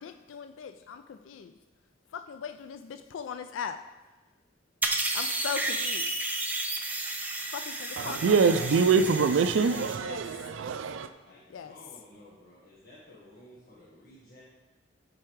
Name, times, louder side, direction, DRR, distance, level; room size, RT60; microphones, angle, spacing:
voice 1, 0.0-1.5 2.1-3.8 5.1-6.1 7.5-8.3 9.1-9.2 10.0-10.3 11.5-11.8, left 7 dB, 80° left, 9 dB, 0.3 m, -39 dB
sound 1, 4.8-10.0, right 2 dB, 10° right, 0.5 m, -32 dB
voice 2, 8.0-11.1, right 5 dB, 80° right, 10 dB, 0.4 m, -24 dB
voice 3, 11.2-14.4, left 1 dB, 55° left, -7 dB, 1.4 m, -53 dB
7.7 x 4.8 x 4.6 m, 1.1 s
head